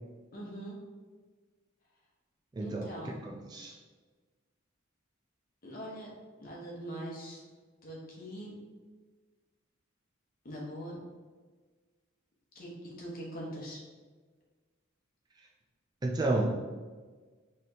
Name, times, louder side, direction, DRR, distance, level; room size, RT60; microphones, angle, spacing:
voice 1, 0.3-0.8 2.6-3.1 5.6-6.1 6.4-7.4 7.8-8.6 10.4-11.0 12.5-13.8, equal, 45° left, -4 dB, 1.0 m, -42 dB
voice 2, 2.5-3.7 16.0-16.5, right 2 dB, 20° right, -1 dB, 0.3 m, -31 dB
4.2 x 3.2 x 2.8 m, 1.4 s
head